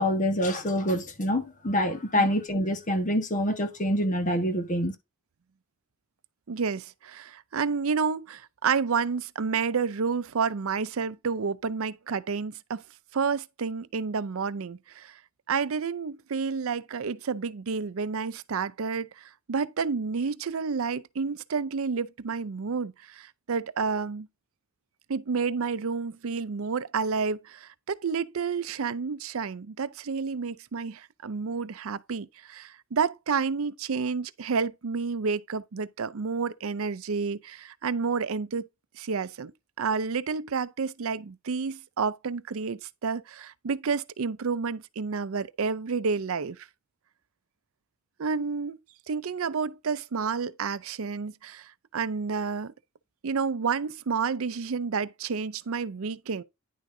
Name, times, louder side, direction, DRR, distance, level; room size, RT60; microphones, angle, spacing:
voice 1, 0.0-4.9, equal, 35° left, 1.3 m, -26 dB
voice 2, 6.5-12.8 13.1-15.2 15.5-24.3 25.1-38.6 38.9-39.5 39.8-46.7 48.2-48.8 49.1-52.7 53.2-56.4, right 5 dB, 75° right, 0.5 m, -30 dB
10.0 x 6.2 x 2.7 m
head